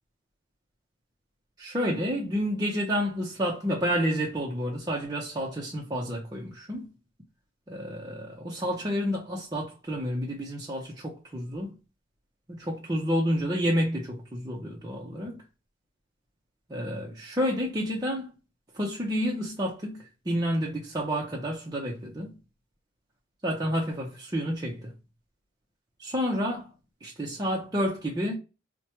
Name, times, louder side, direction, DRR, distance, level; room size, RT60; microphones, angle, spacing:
voice 1, 1.6-6.9 7.7-11.8 12.5-15.4 16.7-18.3 18.7-22.4 23.4-24.9 26.0-26.7 27.0-28.4, equal, 20° right, 0.5 m, -30 dB
4.5 x 2.1 x 2.9 m
head